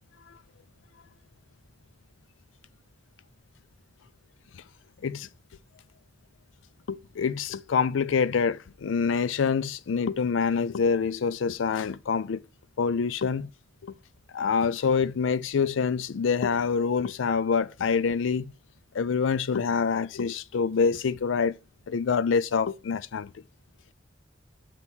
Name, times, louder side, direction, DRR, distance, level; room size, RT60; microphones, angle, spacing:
voice 1, 6.9-12.4 12.8-13.5 13.8-13.9 14.3-18.5 18.9-21.5 21.9-23.3, left 5 dB, 75° left, 0.4 m, -26 dB
6.1 x 3.0 x 5.5 m
head